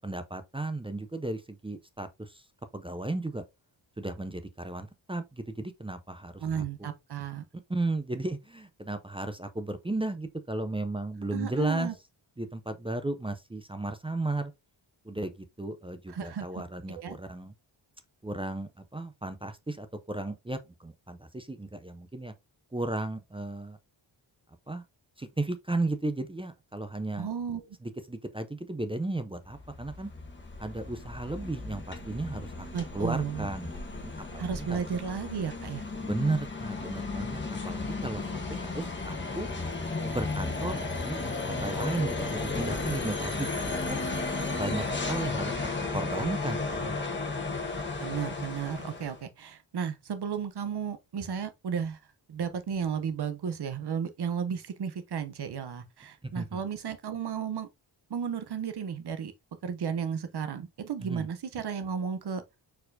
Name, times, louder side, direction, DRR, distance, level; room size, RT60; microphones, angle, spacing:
voice 1, 0.0-2.5 2.7-3.4 4.0-6.9 7.7-11.9 12.4-14.5 15.0-17.5 18.2-22.3 22.7-23.8 24.7-24.8 25.2-27.3 27.8-30.1 30.6-32.7 32.9-34.8 36.0-39.5 40.0-41.2 41.6-44.0 44.5-47.5 56.2-56.6 61.0-61.3, right 2 dB, 15° right, 0.3 m, -35 dB
voice 2, 6.4-7.4 11.3-11.9 16.1-16.6 16.9-17.2 27.2-27.8 32.7-33.5 34.4-35.8 48.0-52.0 52.3-57.7 58.1-59.3 59.6-62.4, right 7 dB, 55° right, 0.7 m, -33 dB
sound 1, 29.4-49.2, left 3 dB, 25° left, 1.0 m, -34 dB
4.3 x 4.3 x 2.6 m
wide cardioid pair, 170°, 47 cm